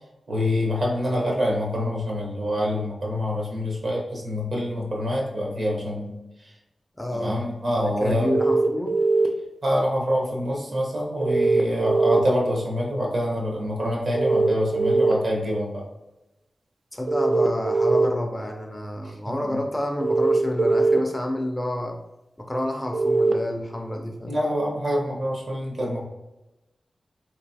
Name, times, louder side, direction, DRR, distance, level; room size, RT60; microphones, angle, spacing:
voice 1, 0.3-6.5 7.1-8.4 9.6-15.8 19.0-19.6 24.2-26.0, equal, 60° right, -2 dB, 1.1 m, -26 dB
voice 2, 7.0-7.5 8.0-8.9 16.9-22.0 22.4-24.4, left 1 dB, 10° left, 3 dB, 0.4 m, -29 dB
sound 1, 8.3-9.3 11.2-12.2 14.1-15.1 17.1-18.1 20.0-21.0 22.9-23.3, right 3 dB, 85° right, 0.4 m, -20 dB
4.2 x 2.9 x 2.8 m, 0.98 s
wide cardioid pair, 120°, 0 cm